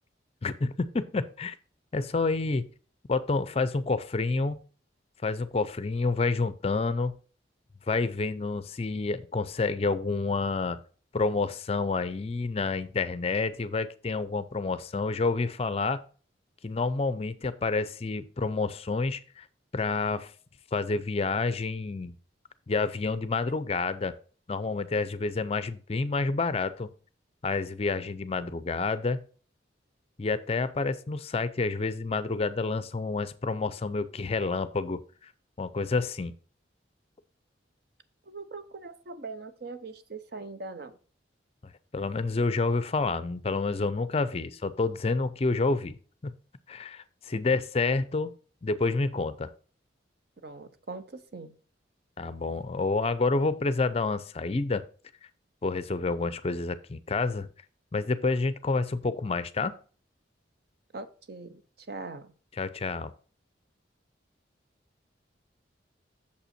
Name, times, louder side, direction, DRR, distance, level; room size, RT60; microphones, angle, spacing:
voice 1, 0.4-1.5 1.9-2.7 3.1-4.6 5.2-7.1 7.9-10.8 11.1-16.0 16.6-19.5 19.7-20.3 20.7-22.1 22.7-24.2 24.5-26.9 27.4-29.2 30.2-35.3 35.6-36.3 41.6-46.0 46.2-46.3 46.7-48.3 48.6-49.5 52.2-54.8 55.6-57.5 57.9-59.7 62.6-63.1, left 3 dB, 30° left, 14 dB, 0.4 m, -29 dB
voice 2, 38.3-41.0 47.3-47.4 50.4-51.6 60.9-62.3, right 3 dB, 55° right, 10 dB, 0.8 m, -41 dB
6.9 x 5.5 x 4.3 m, 0.40 s
head